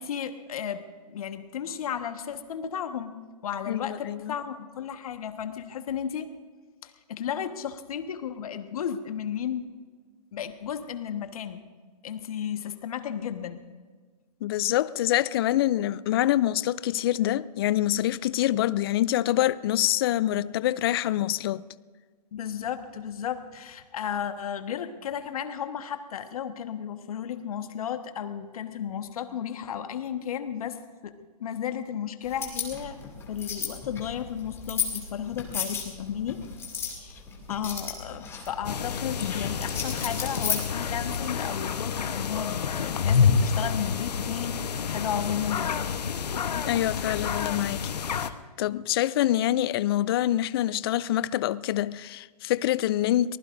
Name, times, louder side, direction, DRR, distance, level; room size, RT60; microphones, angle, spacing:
voice 1, 0.0-3.2 3.4-6.3 6.8-9.7 10.3-11.6 12.0-13.6 22.3-31.1 31.4-33.0 33.3-36.4 36.8-37.2 37.5-46.5, left 9 dB, 60° left, 1.4 m, -34 dB
voice 2, 3.7-4.4 14.4-21.6 46.7-47.9 48.6-53.4, left 13 dB, 35° left, 0.4 m, -25 dB
sound 1, 32.2-41.2, left 6 dB, 10° left, 2.4 m, -35 dB
sound 2, 38.6-48.3, left 6 dB, 80° left, 1.0 m, -28 dB
24.0 x 19.5 x 2.6 m
hypercardioid pair, 145°, 21 cm